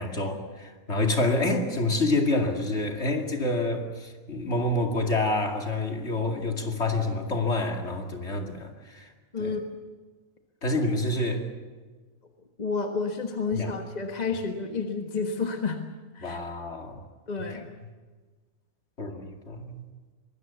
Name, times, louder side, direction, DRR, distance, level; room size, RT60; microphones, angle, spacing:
voice 1, 0.0-9.1 9.4-9.5 10.6-11.5 13.5-13.7 16.2-17.0 19.0-19.8, left 2 dB, 50° left, 3 dB, 2.7 m, -28 dB
voice 2, 12.6-15.8 16.1-16.4 17.3-17.7, left 4 dB, 30° left, 4 dB, 1.5 m, -30 dB
24.0 x 20.5 x 7.1 m, 1.4 s
omnidirectional pair, 1.5 m